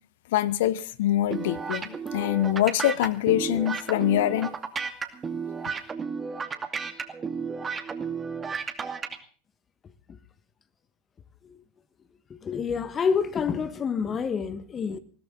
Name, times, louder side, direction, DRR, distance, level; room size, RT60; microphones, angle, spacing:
voice 1, 0.3-4.5, left 12 dB, 70° left, 1.0 m, -24 dB
sound 1, 1.3-9.2, right 5 dB, 25° right, 2.5 m, -33 dB
voice 2, 12.3-15.0, left 6 dB, 30° left, 1.5 m, -28 dB
21.0 x 16.5 x 3.9 m
hypercardioid pair, 85°, 0 cm